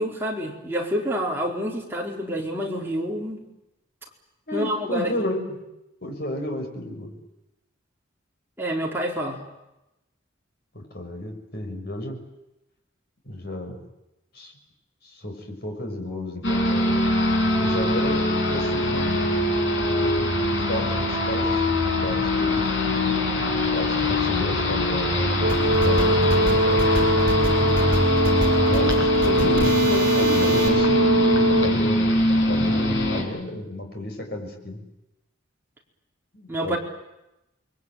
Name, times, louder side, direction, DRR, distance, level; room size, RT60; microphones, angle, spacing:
voice 1, 0.0-3.4 4.5-5.3 8.6-9.4 36.5-36.8, equal, 10° right, -2 dB, 4.6 m, -28 dB
voice 2, 4.5-5.4 6.0-7.2 10.7-12.2 13.2-13.8 14.3-14.5 15.0-17.1 17.5-19.3 20.0-23.1 23.7-28.0 28.7-34.8 36.3-36.8, left 1 dB, 50° left, 3 dB, 6.3 m, -32 dB
sound 1, 16.4-33.2, left 1 dB, 65° left, 6.5 m, -23 dB
Brass instrument, 25.4-31.8, right 1 dB, 75° right, 2.1 m, -22 dB
sound 2, 25.5-30.7, right 1 dB, 50° right, 7.4 m, -30 dB
29.0 x 22.5 x 9.2 m, 0.92 s
head